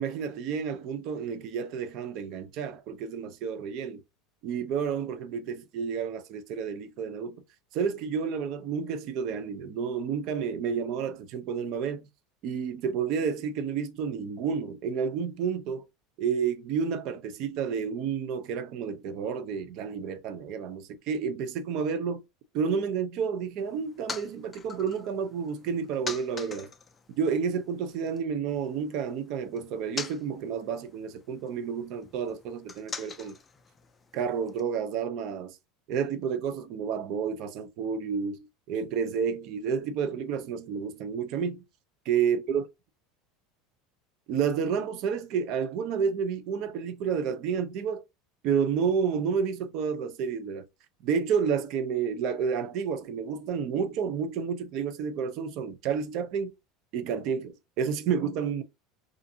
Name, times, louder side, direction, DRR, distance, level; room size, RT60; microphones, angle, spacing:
voice 1, 0.0-4.0 4.4-7.4 7.7-12.1 12.4-15.9 16.2-22.2 22.5-26.7 27.2-33.3 34.1-35.6 35.9-41.6 42.1-42.6 44.3-48.0 48.4-50.6 51.0-56.5 56.9-58.6, right 6 dB, 55° right, 0.5 m, -30 dB
sound 1, 23.6-28.2 28.5-34.6, left 5 dB, 20° left, 0.3 m, -44 dB
2.4 x 2.4 x 2.7 m
supercardioid pair, 140°, 0 cm